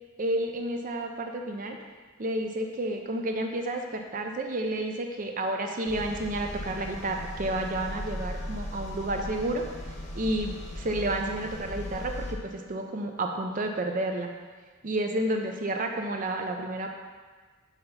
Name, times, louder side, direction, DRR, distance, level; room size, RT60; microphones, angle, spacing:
voice 1, 0.2-1.8 2.2-9.6 10.1-14.3 14.8-17.0, right 1 dB, 35° right, 3 dB, 0.5 m, -30 dB
sound 1, 5.9-12.3, left 1 dB, 30° left, 0.9 m, -38 dB
5.7 x 3.4 x 5.5 m, 1.4 s
head